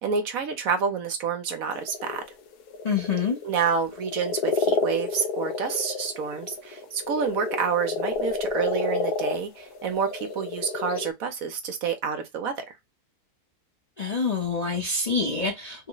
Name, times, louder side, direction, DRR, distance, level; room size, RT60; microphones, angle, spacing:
voice 1, 0.0-2.2 3.4-12.6, right 6 dB, 65° right, 1.0 m, -28 dB
sound 1, 1.8-11.1, left 4 dB, 80° left, 1.3 m, -30 dB
voice 2, 2.8-3.4 14.0-15.9, left 4 dB, 35° left, 0.7 m, -26 dB
3.1 x 2.1 x 3.7 m
omnidirectional pair, 1.7 m